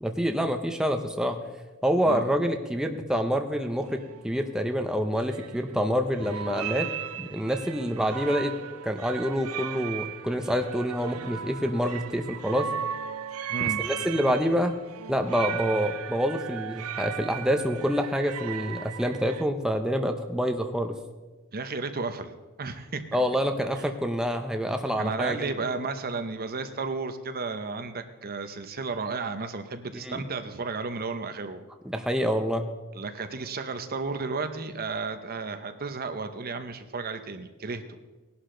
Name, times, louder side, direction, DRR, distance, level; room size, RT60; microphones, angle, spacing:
voice 1, 0.0-1.4 1.8-6.9 7.2-8.5 8.8-12.7 13.6-14.7 15.1-21.0 23.1-25.5 30.0-30.2 31.8-32.7, equal, 5° right, 4 dB, 0.8 m, -27 dB
sound 1, 3.5-3.6 3.9-4.3 5.2-5.9 6.2-19.4, right 9 dB, 80° right, 0.5 m, -36 dB
voice 2, 13.5-13.8 21.5-22.3 22.6-23.2 23.7-23.8 25.0-31.6 32.9-37.8, right 4 dB, 45° right, 8 dB, 0.9 m, -33 dB
18.5 x 11.5 x 3.9 m, 1.2 s
head